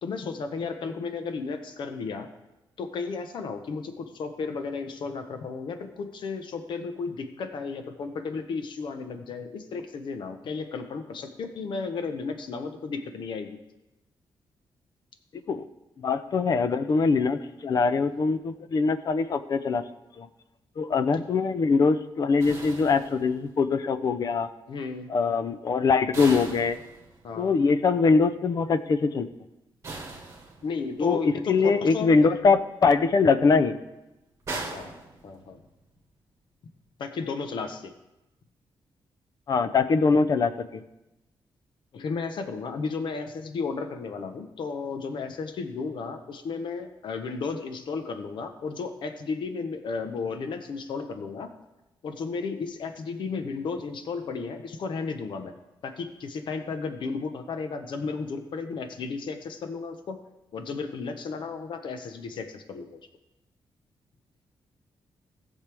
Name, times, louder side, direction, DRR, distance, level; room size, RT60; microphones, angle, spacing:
voice 1, 0.0-2.3 2.8-13.6 24.7-25.1 27.2-27.5 30.6-32.1 34.5-34.9 35.2-35.6 37.0-37.9 41.9-51.5 52.0-55.5 55.8-60.2 60.5-63.0, left 4 dB, 65° left, 7 dB, 1.0 m, -34 dB
voice 2, 15.3-15.6 16.0-19.8 20.2-20.3 20.8-24.5 25.1-26.8 27.4-29.3 31.0-33.7 39.5-40.8, left 4 dB, 45° left, 12 dB, 0.6 m, -23 dB
sound 1, 22.4-23.7 26.1-27.5 29.8-31.0 34.5-35.8, right 3 dB, 35° right, 1.9 m, -39 dB
18.5 x 6.6 x 3.5 m, 0.97 s
wide cardioid pair, 170°, 9 cm